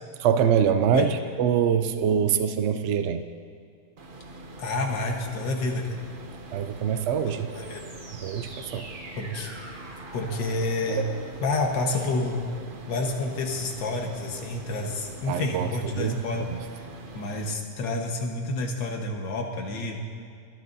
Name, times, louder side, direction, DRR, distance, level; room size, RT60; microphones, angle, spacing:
voice 1, 0.2-3.2 6.5-7.5 8.1-8.9 15.3-16.6, right 8 dB, 85° right, 9 dB, 0.6 m, -24 dB
sound 1, 4.0-17.5, right 1 dB, 40° right, 0.8 m, -44 dB
voice 2, 4.6-5.8 7.3-7.8 9.2-9.5 10.1-11.0 11.4-12.4 12.9-16.5 17.1-20.0, left 2 dB, 90° left, 1 dB, 2.0 m, -29 dB
sound 2, 7.5-13.2, right 3 dB, 70° right, 2.2 m, -41 dB
24.0 x 12.5 x 2.7 m, 2.3 s
omnidirectional pair, 1.9 m